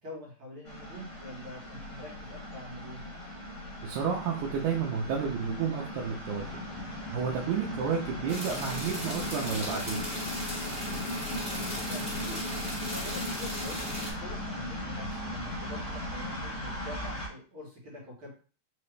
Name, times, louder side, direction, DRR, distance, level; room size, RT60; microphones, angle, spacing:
voice 1, 0.0-3.0 11.8-12.4 12.9-18.3, left 1 dB, 50° right, -6 dB, 2.3 m, -45 dB
sound 1, 0.7-17.3, left 1 dB, 55° left, 2.3 m, -38 dB
voice 2, 3.8-6.6 7.1-10.1, right 6 dB, 85° right, -3 dB, 2.2 m, -31 dB
sound 2, 6.4-11.7, left 2 dB, 75° left, 1.5 m, -51 dB
sound 3, 8.3-14.1, left 1 dB, 10° right, 1.6 m, -37 dB
4.9 x 2.9 x 3.2 m, 0.38 s
omnidirectional pair, 3.4 m